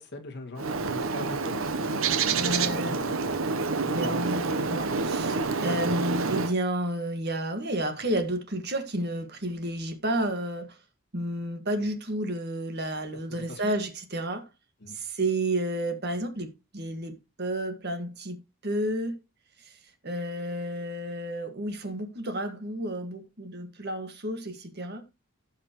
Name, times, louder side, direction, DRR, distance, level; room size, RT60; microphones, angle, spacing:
voice 1, 0.0-3.4 3.9-4.4 13.3-13.7 14.8-15.0, left 2 dB, 50° left, 1.9 m, -41 dB
Bird, 0.6-6.5, right 4 dB, 65° right, 0.9 m, -28 dB
voice 2, 2.3-3.0 3.9-10.8 11.1-14.5 14.9-19.2 19.7-19.8 20.0-25.0, right 1 dB, 50° right, 1.7 m, -31 dB
17.0 x 5.9 x 3.0 m
head